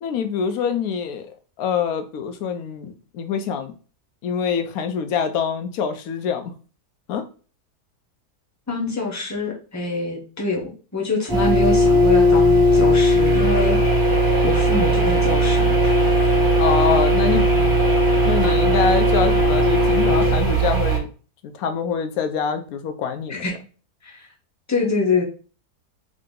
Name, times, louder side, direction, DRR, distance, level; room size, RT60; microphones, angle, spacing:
voice 1, 0.0-1.3 1.6-3.7 4.2-6.5 7.1-7.3 16.6-17.5 18.2-21.1 21.4-23.5, left 6 dB, 70° left, 1.0 m, -25 dB
voice 2, 8.7-10.6 10.9-13.8 14.4-16.3 18.4-18.5 23.3-23.5 24.0-24.2 24.7-25.2, left 3 dB, 15° left, 0.6 m, -25 dB
sound 1, 11.3-21.0, equal, 15° right, 0.9 m, -17 dB
3.8 x 2.7 x 3.7 m
omnidirectional pair, 1.7 m